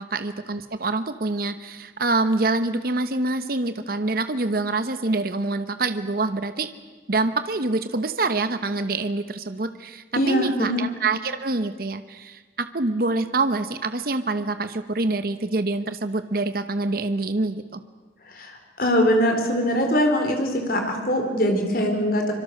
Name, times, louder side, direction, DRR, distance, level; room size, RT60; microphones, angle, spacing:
voice 1, 0.0-6.7 7.1-17.8, right 3 dB, 50° right, 10 dB, 0.9 m, -26 dB
voice 2, 10.1-10.8 18.3-22.3, equal, 50° left, 3 dB, 4.2 m, -22 dB
25.0 x 23.0 x 6.5 m, 1.4 s
head